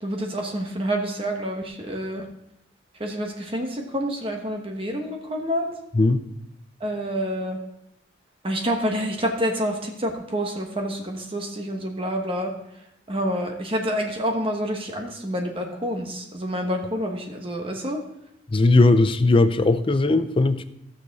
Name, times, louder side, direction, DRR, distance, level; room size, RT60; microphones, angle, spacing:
voice 1, 0.0-2.3 3.0-5.7 6.8-7.6 8.4-12.5 13.1-18.0, equal, 30° right, 2 dB, 1.1 m, -28 dB
voice 2, 18.5-20.6, left 2 dB, 25° left, 12 dB, 0.5 m, -18 dB
15.5 x 6.6 x 4.1 m, 0.80 s
head